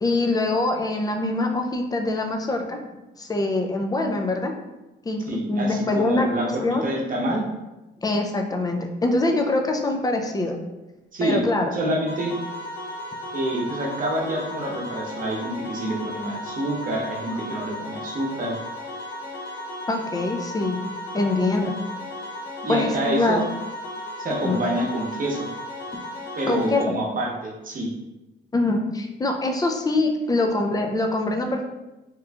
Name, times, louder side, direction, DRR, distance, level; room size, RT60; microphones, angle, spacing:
voice 1, 0.0-2.8 3.2-4.5 5.1-6.3 6.6-6.8 8.0-10.5 11.2-11.7 19.9-20.8 21.1-21.8 22.7-23.5 24.4-24.6 26.5-26.8 28.5-31.6, left 2 dB, 20° left, 3 dB, 0.4 m, -24 dB
voice 2, 5.3-7.4 11.1-11.4 11.7-12.4 13.3-18.6 22.6-23.4 24.2-25.5 26.4-27.9, right 1 dB, 45° right, -1 dB, 0.9 m, -27 dB
sound 1, 12.1-26.8, left 1 dB, 65° left, 0.8 m, -35 dB
3.0 x 2.4 x 3.3 m, 1.0 s
cardioid pair, 90°, 20 cm